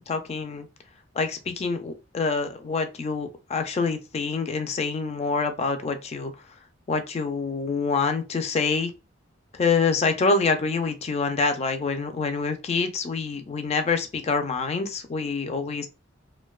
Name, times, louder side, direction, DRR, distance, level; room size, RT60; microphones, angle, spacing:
voice 1, 0.1-0.7 1.2-6.3 6.9-8.9 9.5-15.9, left 4 dB, 35° left, 0.3 m, -26 dB
2.5 x 2.1 x 2.3 m
head